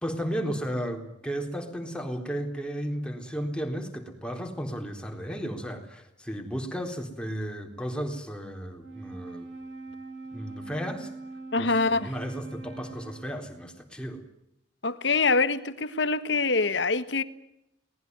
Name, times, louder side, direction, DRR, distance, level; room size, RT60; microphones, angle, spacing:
voice 1, 0.0-9.5 10.3-11.1 11.6-11.7 12.0-14.2, equal, 5° left, 3.8 m, -34 dB
Wind instrument woodwind instrument, 8.7-13.5, right 3 dB, 80° right, 6.4 m, -42 dB
voice 2, 11.5-12.1 14.8-17.2, left 3 dB, 70° left, 1.6 m, -25 dB
23.5 x 19.5 x 9.5 m
head